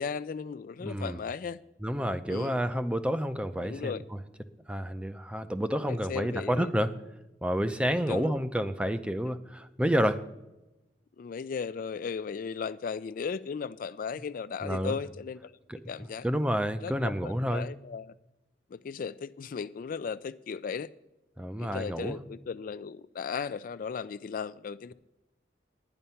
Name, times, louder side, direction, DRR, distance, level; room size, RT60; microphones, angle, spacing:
voice 1, 0.0-1.6 2.3-2.6 3.6-4.0 5.7-6.7 8.0-8.3 11.2-15.6 15.9-16.3 16.8-18.2 18.7-20.9 21.6-24.9, left 6 dB, 50° left, 0.3 m, -36 dB
voice 2, 0.8-1.2 1.8-4.0 4.7-6.9 7.4-10.2 14.6-15.0 16.2-17.7 21.4-22.2, equal, 5° right, 0.5 m, -29 dB
11.0 x 9.8 x 5.7 m
head